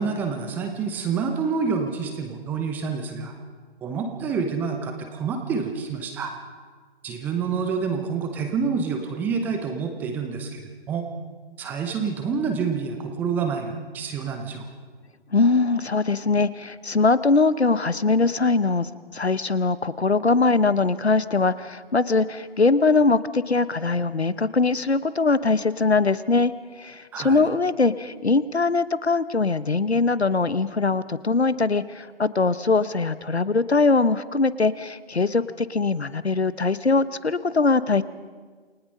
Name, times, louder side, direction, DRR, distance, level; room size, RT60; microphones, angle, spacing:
voice 1, 0.0-3.3 3.8-6.3 7.0-10.6 10.9-11.0 11.6-14.6 27.1-27.4, right 5 dB, 5° right, 5 dB, 0.7 m, -27 dB
voice 2, 15.3-26.5 26.8-38.0, left 3 dB, 85° left, 15 dB, 1.1 m, -22 dB
28.5 x 19.5 x 5.4 m, 1.5 s
figure-of-eight pair, 140°, 32 cm